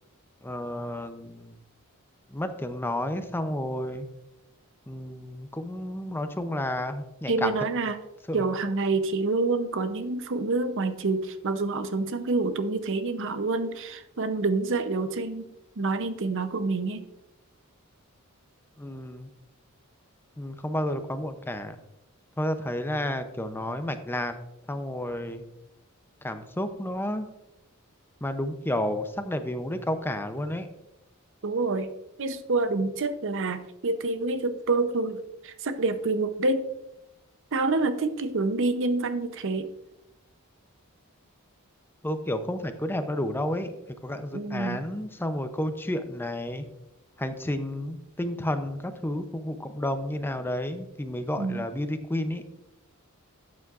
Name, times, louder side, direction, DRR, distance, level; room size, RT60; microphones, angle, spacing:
voice 1, 0.4-1.6 2.3-4.1 4.9-7.5 8.3-8.4 18.8-19.3 20.4-21.8 22.4-24.3 24.7-25.4 26.2-27.3 28.2-30.7 42.0-43.7 44.0-46.6 47.2-52.4, left 1 dB, 10° left, 9 dB, 0.6 m, -31 dB
voice 2, 7.3-8.0 8.3-15.5 15.8-17.0 31.4-31.9 32.2-35.2 35.4-36.6 37.5-39.7 44.3-44.8 51.4-51.6, right 3 dB, 60° right, 10 dB, 0.7 m, -27 dB
12.0 x 8.3 x 2.5 m, 0.89 s
head